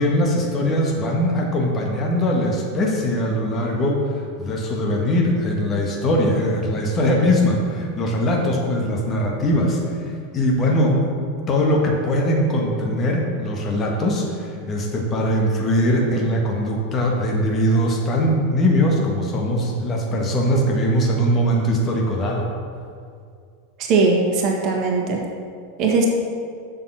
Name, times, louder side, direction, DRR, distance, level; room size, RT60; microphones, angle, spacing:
voice 1, 0.0-9.8 10.3-11.1 11.5-22.5, equal, 30° left, 0 dB, 1.6 m, -21 dB
voice 2, 23.8-25.2 25.8-26.1, right 4 dB, 45° right, 0 dB, 1.5 m, -19 dB
7.1 x 6.7 x 6.1 m, 2.2 s
figure-of-eight pair, 85°, 0 cm